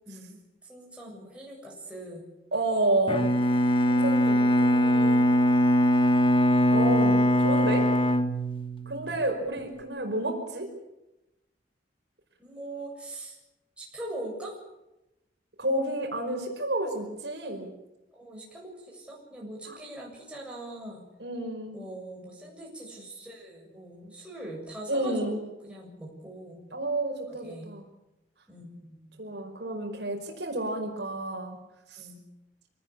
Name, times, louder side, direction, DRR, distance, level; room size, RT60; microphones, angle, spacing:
voice 1, 0.1-2.2 12.4-13.4 13.8-14.6 18.1-21.0 21.7-26.6 27.3-27.7 28.5-29.2 32.0-32.2, right 1 dB, 5° right, -3 dB, 7.3 m, -42 dB
voice 2, 2.5-3.3 3.8-5.3 6.7-7.9 8.8-10.7 15.6-17.7 19.6-19.8 21.2-21.8 24.9-25.4 26.7-27.9 29.2-31.6 31.9-32.1, right 1 dB, 65° right, 3 dB, 5.1 m, -30 dB
Bowed string instrument, 3.1-9.1, equal, 30° left, 1.4 m, -22 dB
25.5 x 19.0 x 8.6 m, 0.95 s
head